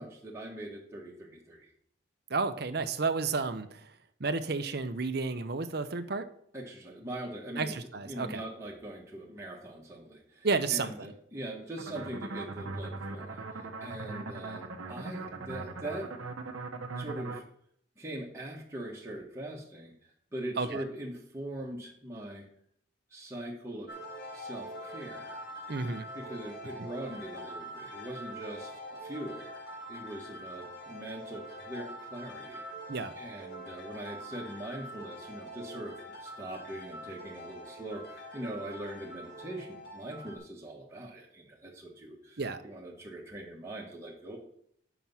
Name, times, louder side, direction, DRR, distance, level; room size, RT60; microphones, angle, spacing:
voice 1, 0.0-1.6 6.5-7.8 8.0-16.1 17.0-17.4 18.0-19.9 20.3-22.5 23.1-23.9 24.3-25.4 26.1-29.5 29.9-32.7 33.2-44.4, right 1 dB, 15° right, -3 dB, 1.5 m, -42 dB
voice 2, 2.3-6.2 7.6-8.4 10.4-11.1 20.6-20.8 25.7-26.1 26.8-26.9 32.9-33.1 42.4-42.6, right 4 dB, 50° right, 10 dB, 0.7 m, -32 dB
sound 1, 11.8-17.4, right 3 dB, 85° right, 0.8 m, -40 dB
sound 2, 23.9-40.4, equal, 55° left, 1.8 m, -44 dB
7.5 x 5.9 x 5.6 m, 0.66 s
head